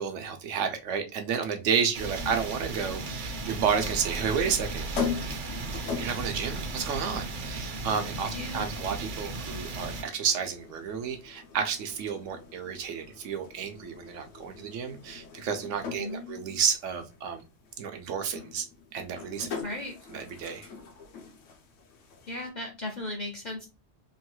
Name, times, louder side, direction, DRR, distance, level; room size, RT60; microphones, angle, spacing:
voice 1, 0.0-4.9 6.0-17.4 17.8-18.6 18.9-19.5 20.1-20.7, right 7 dB, 90° right, 6 dB, 1.0 m, -31 dB
sound 1, 1.9-10.0, right 3 dB, 55° right, 0.6 m, -35 dB
sound 2, 2.8-22.5, left 6 dB, 90° left, 1.0 m, -42 dB
voice 2, 8.3-8.6 16.0-16.6 19.6-19.9 22.3-23.7, left 2 dB, 55° left, 3 dB, 0.5 m, -37 dB
3.0 x 2.3 x 2.9 m, 0.29 s
omnidirectional pair, 1.2 m